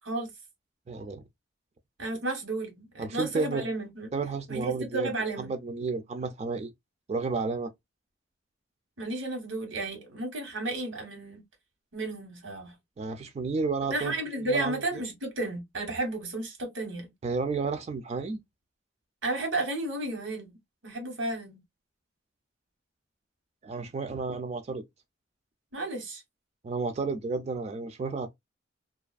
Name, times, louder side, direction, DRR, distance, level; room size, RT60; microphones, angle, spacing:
voice 1, 0.9-1.2 3.0-3.7 4.1-6.7 7.1-7.7 13.0-14.1 14.4-15.0 17.2-18.4 23.6-24.8 26.6-28.3, right 4 dB, 35° right, 0.3 m, -32 dB
voice 2, 2.0-4.1 4.5-5.5 9.0-11.4 11.9-12.7 13.9-17.1 19.2-20.6 20.8-21.6 25.7-26.2, right 2 dB, 85° right, 1.1 m, -33 dB
2.5 x 2.3 x 2.3 m
head